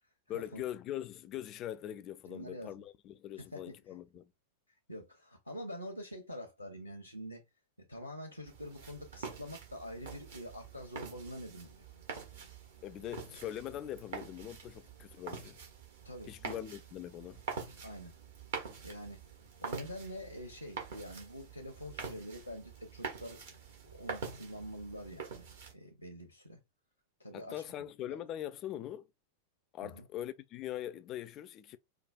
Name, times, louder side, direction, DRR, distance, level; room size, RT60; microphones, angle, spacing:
voice 1, 0.3-4.3 12.8-15.6 16.3-17.4 27.3-29.1 29.7-31.8, left 12 dB, 35° left, 0.4 m, -42 dB
voice 2, 2.3-2.8 3.4-3.7 4.9-7.4 7.9-11.9 13.1-13.2 16.0-16.3 17.8-18.2 18.8-19.2 19.6-23.5 23.8-25.4 25.7-26.6 27.2-27.6 28.1-28.2 29.8-30.1, equal, 90° left, 0.7 m, -46 dB
sound 1, 8.5-25.7, right 5 dB, 60° right, 1.1 m, -45 dB
4.8 x 2.3 x 2.3 m
figure-of-eight pair, 90°, 0 cm